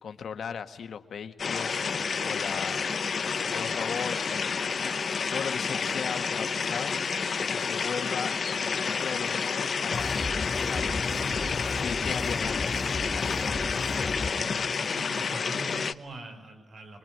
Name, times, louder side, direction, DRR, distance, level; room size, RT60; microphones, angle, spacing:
voice 1, 0.0-2.8 3.5-4.9 5.3-7.0 7.5-13.4, left 7 dB, 75° left, 8 dB, 1.6 m, -38 dB
sound 1, 1.4-15.9, left 5 dB, 50° left, 0.9 m, -30 dB
sound 2, 9.9-14.3, left 3 dB, 30° left, 2.1 m, -33 dB
voice 2, 14.3-17.0, right 2 dB, 65° right, 5 dB, 5.6 m, -43 dB
25.5 x 23.0 x 9.3 m, 0.97 s
wide cardioid pair, 155°, 0 cm